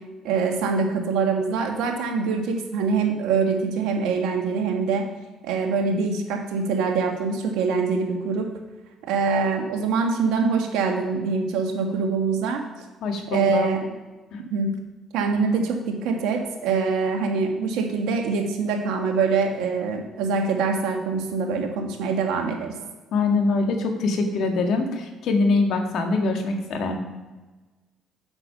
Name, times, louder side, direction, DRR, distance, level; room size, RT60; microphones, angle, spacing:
voice 1, 0.2-5.1 5.4-8.5 9.1-12.6 13.3-13.8 14.5-14.7 15.1-22.7, right 5 dB, 80° right, 3 dB, 1.7 m, -24 dB
voice 2, 13.0-13.7 14.3-14.4 23.1-27.0, left 3 dB, 70° left, 4 dB, 1.8 m, -23 dB
8.1 x 6.8 x 5.8 m, 1.2 s
supercardioid pair, 65°, 0 cm